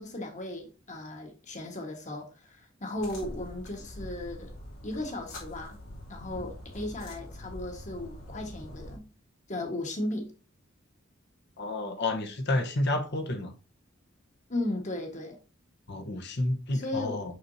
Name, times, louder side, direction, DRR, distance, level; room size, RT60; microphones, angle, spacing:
voice 1, 0.0-4.5 4.8-5.8 6.1-9.0 9.5-10.3 14.5-15.4 16.7-17.4, left 1 dB, 40° left, 1.5 m, -36 dB
sound 1, 3.0-9.0, equal, 80° left, 2.8 m, -44 dB
voice 2, 11.6-13.5 15.9-17.3, left 2 dB, 55° left, 1.1 m, -30 dB
6.2 x 6.0 x 2.7 m
head